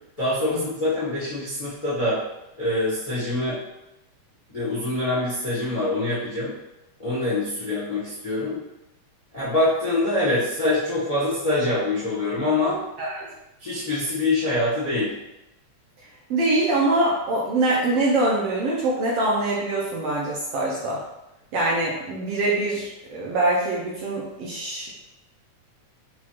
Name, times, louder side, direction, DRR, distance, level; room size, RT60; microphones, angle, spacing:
voice 1, 0.2-2.2 2.6-3.6 4.5-6.5 7.0-8.6 9.3-12.8 13.6-15.1, left 2 dB, 75° left, -10 dB, 0.3 m, -24 dB
voice 2, 13.0-13.3 16.3-21.0 21.5-24.9, right 2 dB, 75° right, -5 dB, 1.4 m, -24 dB
6.0 x 2.4 x 3.0 m, 0.92 s
omnidirectional pair, 3.3 m